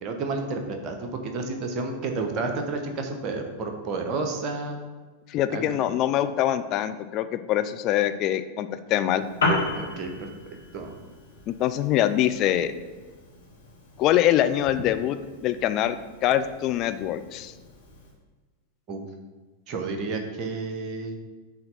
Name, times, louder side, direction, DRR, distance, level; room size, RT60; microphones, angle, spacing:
voice 1, 0.0-4.8 5.5-5.8 9.7-10.3 10.7-11.0 18.9-19.0 19.7-21.2, right 3 dB, 35° right, 3 dB, 1.0 m, -31 dB
voice 2, 5.3-9.3 11.5-12.7 14.0-17.5, left 12 dB, 35° left, 10 dB, 0.4 m, -24 dB
Piano, 9.1-18.1, left 2 dB, 70° left, 1.6 m, -34 dB
7.0 x 3.4 x 5.7 m, 1.3 s
figure-of-eight pair, 90°, 0 cm